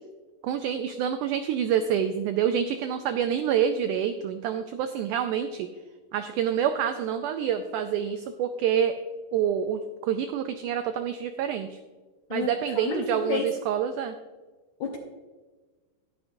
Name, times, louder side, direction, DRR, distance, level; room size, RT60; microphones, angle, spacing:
voice 1, 0.4-5.7 6.1-8.9 9.3-11.8 12.3-14.2, right 8 dB, 90° right, 8 dB, 1.8 m, -27 dB
voice 2, 12.3-13.5 14.8-15.0, left 5 dB, 70° left, 1 dB, 1.8 m, -31 dB
11.0 x 10.5 x 2.6 m, 1.3 s
omnidirectional pair, 4.2 m